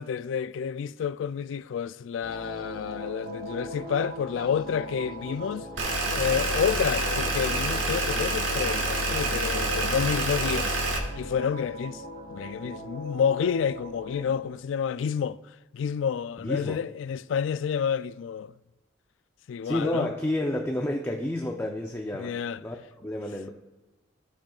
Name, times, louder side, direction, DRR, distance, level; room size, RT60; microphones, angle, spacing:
voice 1, 0.0-5.7 6.1-10.8 11.2-12.0 12.3-15.4 15.7-18.5 19.5-20.1 22.1-22.6, left 7 dB, 80° left, 0.3 m, -29 dB
sound 1, 2.2-14.4, equal, 50° right, 0.9 m, -39 dB
sound 2, 5.8-11.0, right 2 dB, 90° right, 1.6 m, -27 dB
voice 2, 16.4-16.8 19.6-22.3 22.6-23.5, left 1 dB, 10° left, 0.5 m, -30 dB
15.0 x 7.3 x 2.4 m
head